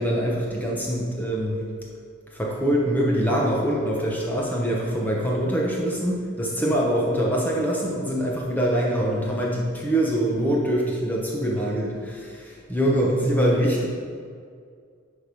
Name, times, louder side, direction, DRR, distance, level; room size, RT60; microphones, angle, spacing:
voice 1, 0.0-1.7 2.3-13.9, equal, 10° left, -3 dB, 0.9 m, -24 dB
10.5 x 3.7 x 4.8 m, 2.1 s
head